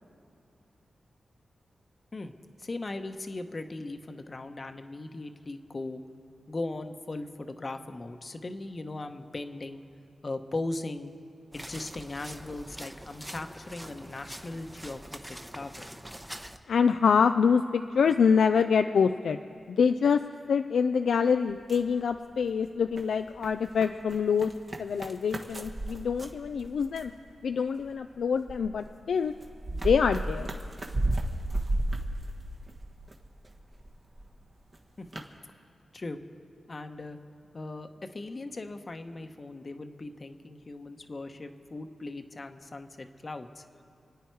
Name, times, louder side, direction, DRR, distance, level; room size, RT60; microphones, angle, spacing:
voice 1, 2.6-6.0 6.5-9.8 10.2-11.1 11.5-15.9 35.0-35.2 35.9-36.2 36.7-37.2 37.5-43.8, left 2 dB, 45° left, 7 dB, 1.0 m, -38 dB
sound 1, 11.5-16.6, equal, 10° right, 0.9 m, -44 dB
voice 2, 16.7-19.4 19.7-20.2 20.5-24.5 24.8-27.1 27.4-29.3 29.8-30.5, left 6 dB, 80° left, 8 dB, 0.4 m, -25 dB
sound 2, 21.5-22.5 22.8-27.2 27.8-33.1 33.4-34.4 34.7-34.8 35.1-35.3, right 1 dB, 45° right, 1.5 m, -33 dB
28.0 x 9.3 x 4.7 m, 2.5 s
cardioid pair, 50°, 0 cm